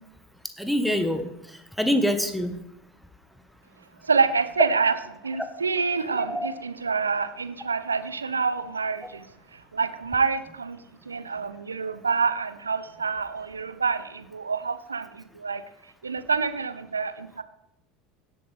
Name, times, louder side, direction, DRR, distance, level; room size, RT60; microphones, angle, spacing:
voice 1, 0.4-2.6 6.1-6.5, equal, ahead, 7 dB, 1.3 m, -26 dB
voice 2, 4.0-4.9 5.2-9.3 9.5-15.6 16.0-17.4, right 5 dB, 80° right, 12 dB, 0.6 m, -27 dB
17.0 x 7.8 x 3.4 m, 0.81 s
figure-of-eight pair, 75°, 0 cm